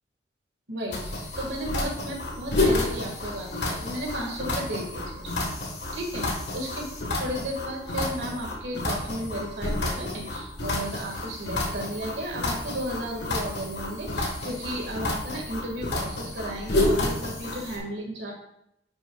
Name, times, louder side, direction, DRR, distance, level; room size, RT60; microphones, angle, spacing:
voice 1, 0.7-5.5 5.9-6.9 7.2-18.3, right 1 dB, 75° right, -1 dB, 2.0 m, -34 dB
sound 1, 0.9-17.8, left 2 dB, 70° left, 1.5 m, -30 dB
9.6 x 6.1 x 2.4 m, 0.78 s
head